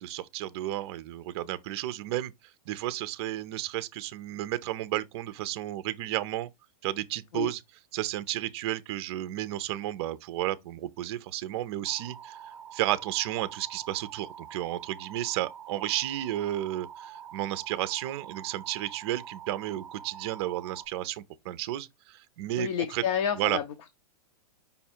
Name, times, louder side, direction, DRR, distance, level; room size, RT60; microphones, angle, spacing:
voice 1, 0.0-2.3 2.7-6.5 6.8-7.6 7.9-12.4 12.7-23.0 23.4-23.6, right 14 dB, 45° right, 0.4 m, -32 dB
sound 1, 11.8-20.9, right 9 dB, 20° right, 0.9 m, -46 dB
voice 2, 22.6-23.7, left 8 dB, 55° left, 0.8 m, -29 dB
5.3 x 2.3 x 4.2 m
hypercardioid pair, 145°, 20 cm